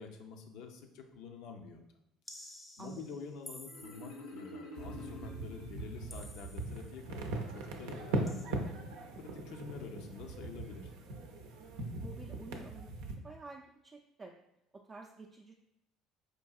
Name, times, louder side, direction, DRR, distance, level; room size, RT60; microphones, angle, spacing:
voice 1, 0.0-1.8 2.8-7.2 7.5-8.6 9.2-10.9, left 5 dB, 70° left, 4 dB, 0.5 m, -48 dB
sound 1, 2.3-4.4 6.1-7.0 8.3-8.5, left 1 dB, 20° left, 0.5 m, -52 dB
voice 2, 2.8-3.2 12.0-12.9 13.2-14.3 14.7-15.6, right 3 dB, 30° right, 0 dB, 0.4 m, -50 dB
Marimba xylophone, 3.7-6.4, left 1 dB, 90° left, 0.9 m, -48 dB
sound 2, 4.8-13.1, right 2 dB, 80° right, 0.5 m, -40 dB
4.5 x 2.6 x 2.3 m, 0.84 s
supercardioid pair, 85°, 0 cm